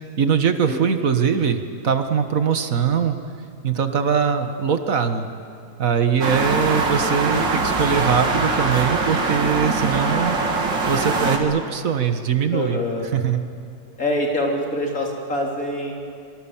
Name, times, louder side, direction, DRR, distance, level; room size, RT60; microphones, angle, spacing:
voice 1, 0.2-3.2 3.6-5.3 5.8-10.4 10.8-12.8 13.1-13.4, right 7 dB, 50° right, 7 dB, 1.7 m, -21 dB
voice 2, 6.2-6.7 12.5-13.1 14.0-15.9, left 1 dB, 50° left, -1 dB, 3.8 m, -25 dB
sound 1, 6.2-11.4, right 3 dB, 80° right, 2.9 m, -22 dB
25.5 x 24.0 x 7.3 m, 2.4 s
omnidirectional pair, 2.0 m